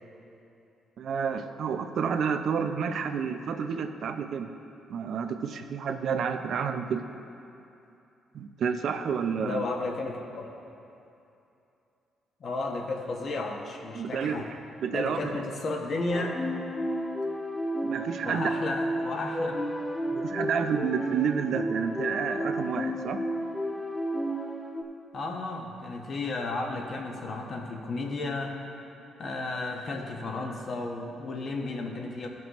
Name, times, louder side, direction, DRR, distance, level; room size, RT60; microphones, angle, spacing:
voice 1, 1.0-4.5 4.9-7.0 8.3-9.7 13.9-15.4 17.8-18.5 20.1-23.2, right 6 dB, 65° right, 8 dB, 0.5 m, -30 dB
voice 2, 9.4-10.5 12.4-14.5 14.9-16.4 18.2-19.6 25.1-28.6 29.2-32.3, left 2 dB, 55° left, 1 dB, 1.1 m, -33 dB
sound 1, 16.1-24.8, equal, 10° left, 0.7 m, -32 dB
15.5 x 6.0 x 3.1 m, 2.8 s
cardioid pair, 90°, 0 cm